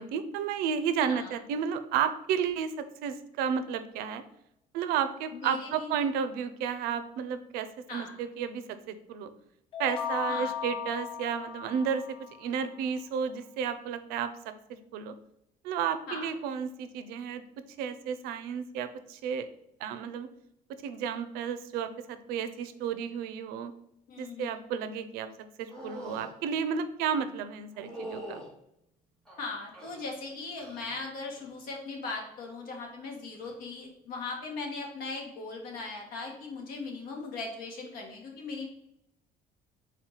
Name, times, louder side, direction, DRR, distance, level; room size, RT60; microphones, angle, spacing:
voice 1, 0.0-2.7 3.0-4.2 4.7-9.3 9.8-12.0 12.4-14.3 14.7-15.1 15.6-17.4 17.8-19.5 19.8-20.3 20.8-23.7 24.2-25.3 25.6-28.4, right 7 dB, 85° right, 11 dB, 0.5 m, -32 dB
voice 2, 5.3-5.9 7.9-8.2 10.3-10.5 16.1-16.3 24.1-24.6 29.4-38.7, left 3 dB, 75° left, 1 dB, 1.4 m, -39 dB
sound 1, 9.7-12.5, left 8 dB, 35° left, 0.5 m, -36 dB
sound 2, 25.7-26.3 27.7-28.5 29.3-30.1 30.6-31.0 31.4-31.8 33.3-33.5, equal, 5° left, 1.0 m, -43 dB
4.2 x 3.1 x 4.0 m, 0.81 s
cardioid pair, 160°, 15 cm